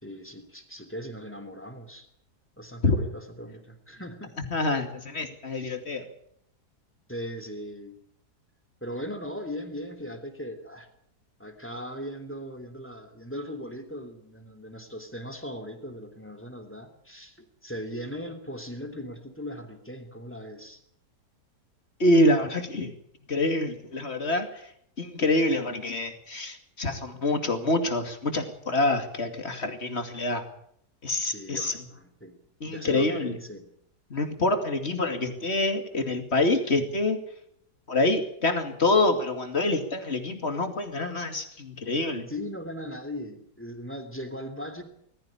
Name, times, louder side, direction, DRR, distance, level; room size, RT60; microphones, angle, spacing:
voice 1, 0.0-2.1 2.6-4.4 7.1-8.0 8.8-10.9 11.4-20.8 31.2-33.7 42.3-44.8, equal, 5° left, 8 dB, 2.9 m, -39 dB
voice 2, 4.5-6.1 22.0-22.9 23.3-24.7 25.0-30.4 31.0-31.9 32.6-33.4 34.1-37.2 37.9-42.3, left 2 dB, 40° left, 7 dB, 2.7 m, -26 dB
20.0 x 14.5 x 10.0 m, 0.71 s
omnidirectional pair, 1.8 m